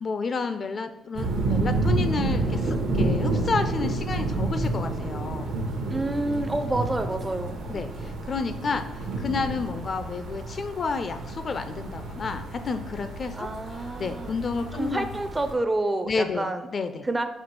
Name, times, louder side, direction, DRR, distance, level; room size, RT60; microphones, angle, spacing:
voice 1, 0.0-5.5 7.7-13.5 14.0-15.1 16.0-16.5 16.7-17.1, left 4 dB, 45° left, 9 dB, 0.4 m, -30 dB
sound 1, 1.1-15.5, right 2 dB, 75° right, 0.8 m, -29 dB
voice 2, 5.9-7.6 13.4-14.3 14.7-16.7 17.0-17.3, right 2 dB, 20° right, 8 dB, 0.4 m, -28 dB
4.3 x 2.4 x 4.6 m, 0.93 s
cardioid pair, 90°, 0 cm